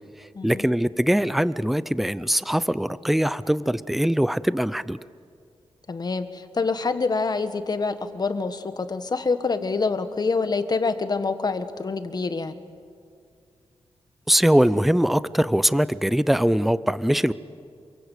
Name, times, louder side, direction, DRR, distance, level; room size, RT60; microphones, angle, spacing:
voice 1, 0.4-5.0 14.3-17.3, equal, ahead, 16 dB, 0.6 m, -22 dB
voice 2, 5.9-12.6, left 4 dB, 40° left, 9 dB, 1.6 m, -26 dB
28.5 x 23.0 x 8.4 m, 2.3 s
wide cardioid pair, 105°, 10 cm